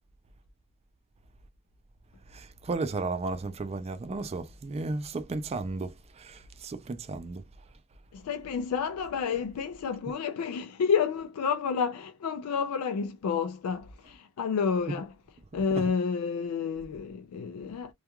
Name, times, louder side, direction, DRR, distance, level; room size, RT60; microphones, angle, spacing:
voice 1, 2.7-5.9 6.6-7.4, right 3 dB, 30° right, 0.4 m, -33 dB
voice 2, 8.1-15.2 15.5-17.9, left 6 dB, 85° left, 0.3 m, -30 dB
2.3 x 2.2 x 2.8 m
head